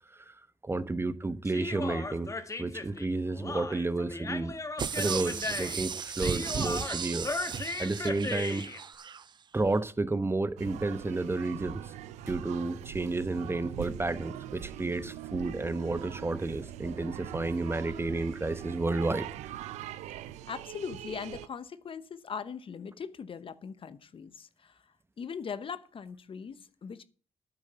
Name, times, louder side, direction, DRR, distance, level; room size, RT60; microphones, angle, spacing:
voice 1, 0.1-2.3 2.6-4.5 4.9-7.5 7.8-8.7 9.5-11.9 12.2-19.6, right 2 dB, 20° right, 0.9 m, -31 dB
Human voice, 1.4-8.8, left 3 dB, 25° left, 1.3 m, -37 dB
sound 1, 4.8-9.2 9.7-9.8, right 7 dB, 40° right, 0.4 m, -35 dB
sound 2, 10.6-21.5, right 12 dB, 90° right, 0.5 m, -42 dB
voice 2, 20.5-24.8 25.2-27.0, left 6 dB, 50° left, 0.9 m, -40 dB
9.3 x 8.6 x 6.8 m
supercardioid pair, 65°, 11 cm